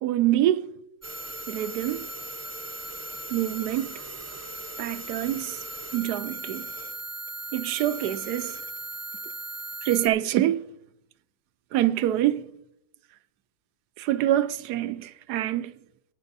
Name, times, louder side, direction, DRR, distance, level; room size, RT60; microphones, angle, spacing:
voice 1, 0.0-0.7 1.5-2.0 3.3-3.9 4.8-5.6 5.9-6.7 7.5-8.6 9.8-10.7 11.7-12.5 14.0-15.7, right 13 dB, 90° right, 1.1 m, -25 dB
sound 1, 1.0-10.1, right 2 dB, 15° right, 0.6 m, -38 dB
18.5 x 9.7 x 2.6 m
omnidirectional pair, 1.7 m